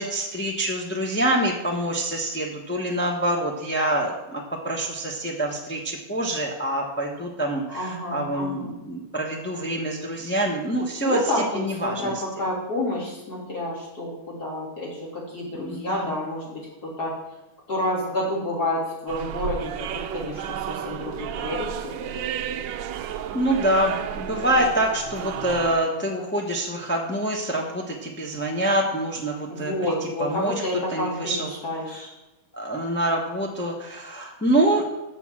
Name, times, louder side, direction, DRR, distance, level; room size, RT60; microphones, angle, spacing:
voice 1, 0.0-11.2 11.5-12.1 15.6-16.1 22.9-23.0 23.3-29.9 30.2-30.5 30.9-31.5 32.5-34.9, right 1 dB, 10° left, -1 dB, 0.4 m, -26 dB
voice 2, 7.7-8.7 11.0-17.2 17.7-22.1 29.5-32.1, left 1 dB, 45° left, -5 dB, 3.7 m, -29 dB
sound 1, 19.1-25.8, right 9 dB, 75° right, 1.1 m, -32 dB
6.9 x 6.8 x 7.4 m, 1.1 s
omnidirectional pair, 2.4 m